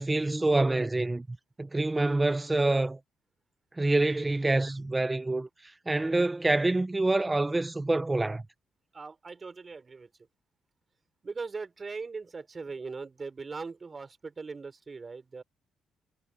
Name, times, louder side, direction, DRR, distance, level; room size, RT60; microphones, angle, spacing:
voice 1, 0.0-3.0 3.8-5.5 5.9-8.4, right 2 dB, 15° right, 1.2 m, -26 dB
voice 2, 8.9-10.1 11.2-15.4, right 4 dB, 30° right, 4.2 m, -40 dB
cardioid pair, 90°, 0 cm